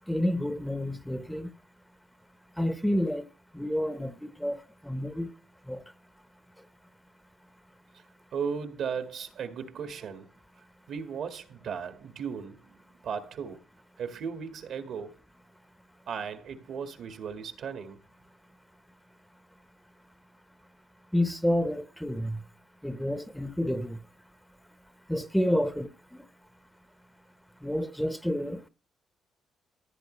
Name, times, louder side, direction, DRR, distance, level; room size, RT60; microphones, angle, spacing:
voice 1, 0.1-1.5 2.6-3.3 3.5-5.3 5.7-5.8 21.1-22.4 22.8-24.0 25.1-26.2 27.6-28.6, left 1 dB, 5° left, 1.0 m, -29 dB
voice 2, 8.3-10.3 10.9-12.8 13.0-13.6 14.0-15.2 16.1-18.0, right 6 dB, 70° right, 1.8 m, -36 dB
15.0 x 8.9 x 3.2 m
cardioid pair, 90°, 0 cm